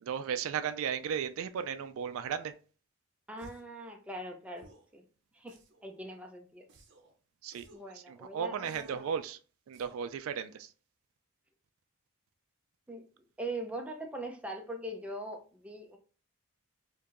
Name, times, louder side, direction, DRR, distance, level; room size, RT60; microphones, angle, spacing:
voice 1, 0.0-2.5 7.4-7.7 8.1-9.4 9.7-10.7, right 7 dB, 70° right, 0.3 m, -35 dB
voice 2, 3.3-4.7 4.9-5.0 5.3-6.7 7.7-9.1 12.9-13.0 13.4-16.0, right 1 dB, 5° right, 0.5 m, -41 dB
sound 1, 3.4-3.8 4.6-4.9 5.5-6.0 6.7-7.1 7.5-7.9 8.6-9.1 9.7-10.1, right 1 dB, 55° right, 0.7 m, -58 dB
4.6 x 2.6 x 2.5 m
head